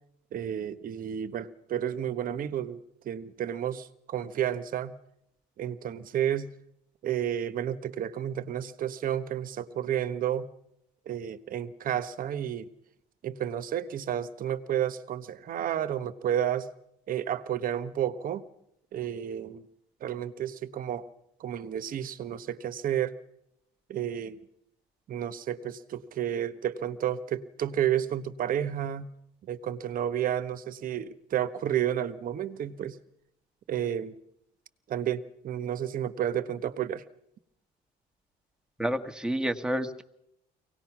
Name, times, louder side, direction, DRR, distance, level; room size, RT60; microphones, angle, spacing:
voice 1, 0.3-4.9 5.6-6.5 7.0-10.5 11.1-12.7 13.2-16.7 17.1-18.4 18.9-19.7 20.0-21.1 21.4-23.2 23.9-24.4 25.1-29.1 29.4-33.0 33.7-34.1 34.9-37.0, right 10 dB, 55° right, 12 dB, 1.3 m, -31 dB
voice 2, 38.8-40.0, equal, 5° right, 7 dB, 1.5 m, -29 dB
24.0 x 18.5 x 6.1 m, 0.79 s
cardioid pair, 110°, 17 cm